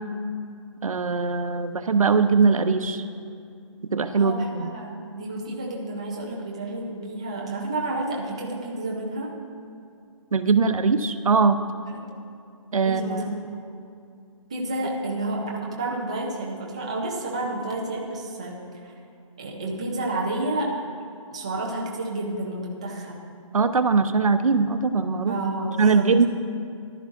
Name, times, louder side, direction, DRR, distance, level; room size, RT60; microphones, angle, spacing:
voice 1, 0.8-3.0 3.9-4.7 10.3-11.6 12.7-13.3 23.5-25.3 25.8-26.2, right 4 dB, 90° right, 10 dB, 0.7 m, -21 dB
voice 2, 4.1-9.3 11.8-12.0 12.8-13.2 14.5-18.9 19.4-20.7 21.3-23.2 25.3-26.2, right 2 dB, 10° right, -3 dB, 0.4 m, -30 dB
14.0 x 11.0 x 2.5 m, 2.4 s
hypercardioid pair, 175°, 17 cm